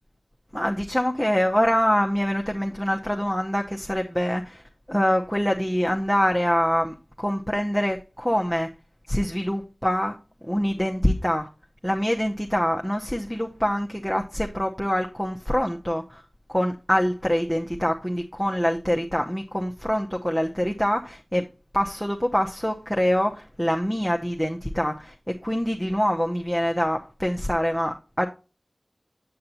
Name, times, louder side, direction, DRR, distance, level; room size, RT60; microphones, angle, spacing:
voice 1, 0.5-8.7 9.1-10.2 10.4-11.5 11.8-16.2 16.5-21.4 21.7-28.3, equal, 5° left, 0.8 m, -25 dB
7.8 x 7.6 x 2.8 m
wide cardioid pair, 60°, 0 cm